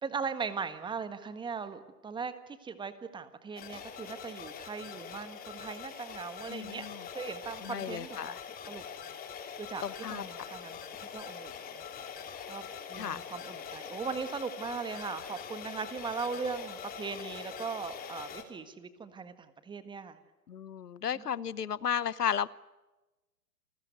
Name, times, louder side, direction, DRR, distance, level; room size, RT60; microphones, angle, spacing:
voice 1, 0.0-6.9 7.1-8.4 8.7-8.8 9.6-10.8 11.1-11.9 12.5-20.2 21.2-21.3, right 5 dB, 10° right, 11 dB, 1.5 m, -39 dB
sound 1, 3.6-18.4, left 7 dB, 20° left, 3.1 m, -43 dB
voice 2, 6.5-7.0 7.6-8.4 9.8-10.3 13.0-13.2 20.5-22.5, left 8 dB, 80° left, 19 dB, 1.1 m, -34 dB
29.0 x 20.0 x 9.4 m, 1.1 s
hypercardioid pair, 125°, 47 cm